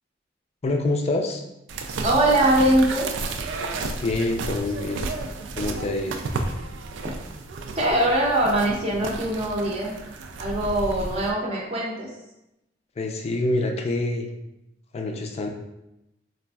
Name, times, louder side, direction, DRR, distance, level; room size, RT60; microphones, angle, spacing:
voice 1, 0.6-1.4 4.0-5.1 5.6-6.2 13.0-14.3 14.9-15.5, left 2 dB, 35° left, 3 dB, 0.4 m, -26 dB
sound 1, 1.7-11.3, right 3 dB, 90° right, 0.3 m, -32 dB
voice 2, 2.0-3.1 7.8-9.9 10.4-12.1, right 1 dB, 35° right, -4 dB, 0.5 m, -22 dB
4.1 x 2.5 x 2.3 m, 0.90 s
head